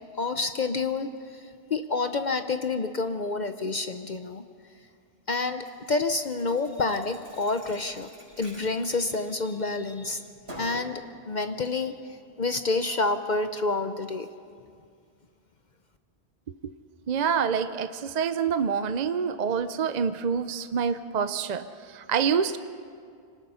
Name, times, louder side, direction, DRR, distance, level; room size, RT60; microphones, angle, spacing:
voice 1, 0.1-4.4 5.3-10.2 10.6-14.3, left 3 dB, 45° left, 8 dB, 0.8 m, -29 dB
Thump thud, 5.6-9.7 10.1-10.9, equal, 65° right, 5.7 m, -47 dB
voice 2, 17.1-22.6, right 6 dB, 50° right, 11 dB, 0.6 m, -27 dB
25.0 x 19.0 x 5.6 m, 2.3 s
omnidirectional pair, 1.1 m